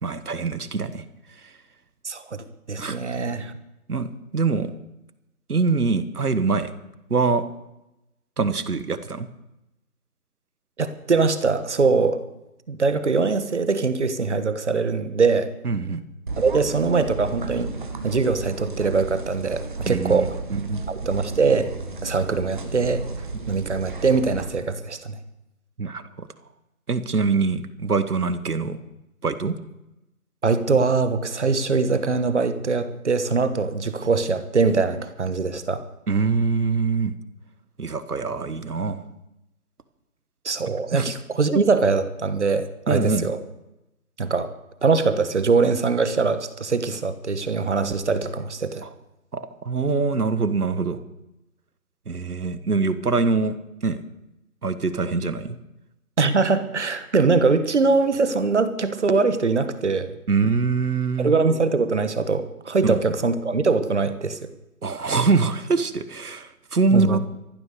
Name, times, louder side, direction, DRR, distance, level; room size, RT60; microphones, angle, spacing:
voice 1, 0.0-1.5 2.8-3.1 3.9-4.7 5.5-6.7 7.1-7.5 8.4-9.3 15.6-16.0 19.8-20.8 25.8-26.3 26.9-28.8 29.2-29.6 36.1-37.1 37.8-39.0 40.7-41.1 41.5-41.6 42.9-43.3 48.8-48.9 49.3-51.0 52.0-53.6 53.8-54.0 54.6-55.6 60.3-61.3 62.8-63.0 64.8-67.2, right 4 dB, 75° right, 13 dB, 1.6 m, -24 dB
voice 2, 2.0-3.5 10.8-12.2 12.7-15.5 16.4-17.7 18.0-20.3 20.9-21.7 22.0-23.0 23.5-25.2 30.4-35.8 40.4-43.4 44.2-44.5 44.8-48.8 56.2-60.1 61.2-64.4 66.9-67.2, right 4 dB, 50° right, 12 dB, 1.4 m, -22 dB
sound 1, 16.3-24.5, right 3 dB, 35° right, 1.4 m, -34 dB
14.0 x 12.5 x 6.7 m, 0.92 s
figure-of-eight pair, 165°, 45 cm